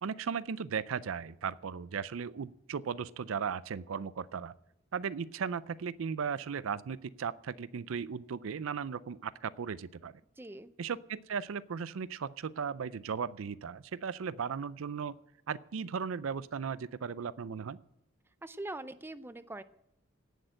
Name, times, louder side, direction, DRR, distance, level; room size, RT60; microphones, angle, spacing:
voice 1, 0.0-4.5 4.9-10.2 10.8-15.1 15.5-17.8, right 6 dB, 75° right, 17 dB, 0.5 m, -36 dB
voice 2, 10.4-10.7 18.4-19.6, right 2 dB, 10° right, 13 dB, 0.5 m, -42 dB
17.0 x 6.6 x 7.7 m, 0.78 s
head